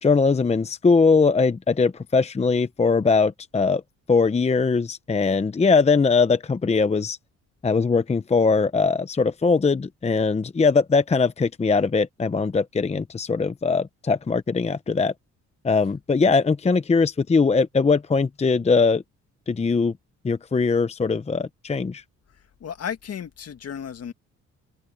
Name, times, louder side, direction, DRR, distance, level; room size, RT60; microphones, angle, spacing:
voice 1, 0.0-3.8 4.1-7.2 7.6-15.1 15.6-19.0 19.5-19.9 20.2-22.0, left 4 dB, 20° left, 0.8 m, -21 dB
voice 2, 22.3-24.1, left 8 dB, 55° left, 2.0 m, -34 dB
cardioid pair, 90°, 30 cm